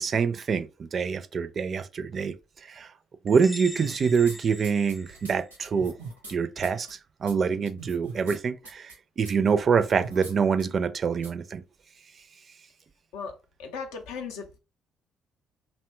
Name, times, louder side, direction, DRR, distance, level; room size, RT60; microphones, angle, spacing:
voice 1, 0.0-2.3 2.7-2.9 3.2-5.9 6.3-11.6, right 6 dB, 45° right, 0.4 m, -25 dB
sound 1, 3.3-5.8, equal, 10° left, 0.6 m, -43 dB
sound 2, 3.8-4.4 4.6-6.3 6.6-6.9 7.3-7.4 7.6-8.4 8.6-8.9 9.2-9.3 9.7-10.3 10.6-10.7 11.2-11.3, right 4 dB, 90° right, 0.6 m, -41 dB
voice 2, 13.1-14.6, left 5 dB, 70° left, 0.5 m, -37 dB
2.7 x 2.2 x 3.1 m
figure-of-eight pair, 45°, 0 cm